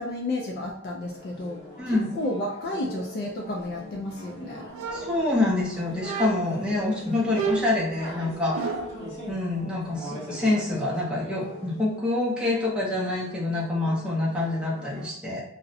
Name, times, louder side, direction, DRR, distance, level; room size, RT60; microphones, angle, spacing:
voice 1, 0.0-4.7, left 1 dB, 50° left, -1 dB, 0.4 m, -32 dB
sound 1, 1.0-15.1, equal, 30° left, 0.9 m, -42 dB
voice 2, 1.8-2.2 4.9-8.6 9.3-15.4, left 2 dB, 5° right, -5 dB, 0.6 m, -26 dB
sound 2, 4.7-5.6 6.0-6.6 7.3-9.1, right 4 dB, 70° right, 0.4 m, -31 dB
2.6 x 2.0 x 2.6 m, 0.70 s
head